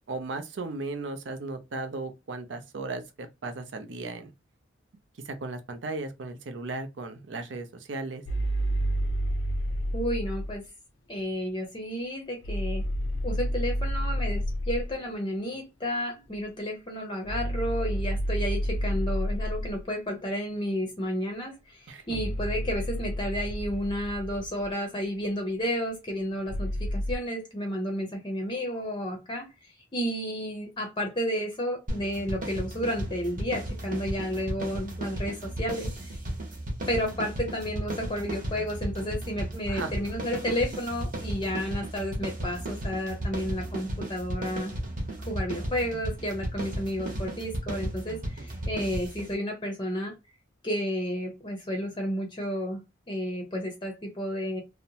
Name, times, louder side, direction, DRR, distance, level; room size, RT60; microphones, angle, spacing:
voice 1, 0.1-4.3 5.3-8.2 21.9-22.0 39.7-39.9, right 3 dB, 70° right, 0.5 m, -36 dB
sound 1, 8.3-10.6 12.4-15.0 17.2-19.8 22.1-24.7 26.5-27.2, equal, 85° left, 0.5 m, -30 dB
voice 2, 9.9-10.6 11.1-12.8 13.2-36.2 36.9-44.7 45.3-50.1 50.6-52.8 53.1-54.6, equal, 25° left, 0.6 m, -32 dB
sound 2, 31.9-49.3, right 1 dB, 45° right, 0.9 m, -34 dB
2.8 x 2.0 x 2.7 m
head